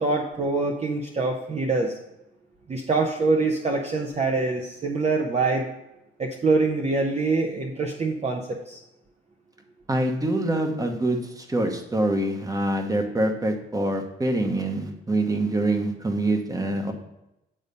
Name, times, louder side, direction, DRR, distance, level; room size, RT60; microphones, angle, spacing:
voice 1, 0.0-1.9 2.7-5.7 6.2-8.8, right 3 dB, 35° right, 1 dB, 0.8 m, -24 dB
voice 2, 9.9-16.9, right 1 dB, 15° right, 5 dB, 1.1 m, -25 dB
8.8 x 4.0 x 5.3 m, 0.90 s
cardioid pair, 90°, 20 cm